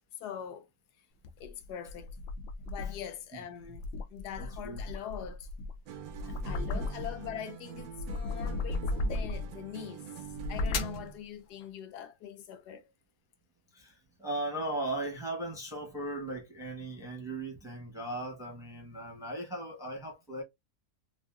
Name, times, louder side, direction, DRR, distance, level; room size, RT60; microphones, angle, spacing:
voice 1, 0.2-0.7 1.4-2.2 2.6-5.5 6.2-12.9, left 9 dB, 90° left, 1.2 m, -43 dB
sound 1, 1.2-3.1 3.6-7.4 7.7-9.6 10.2-11.1, left 2 dB, 70° left, 0.8 m, -36 dB
voice 2, 4.4-4.8 6.4-6.8 13.7-20.4, right 1 dB, 5° right, 0.7 m, -38 dB
sound 2, 5.9-11.2, right 10 dB, 70° right, 1.0 m, -45 dB
3.6 x 2.4 x 2.3 m
omnidirectional pair, 1.7 m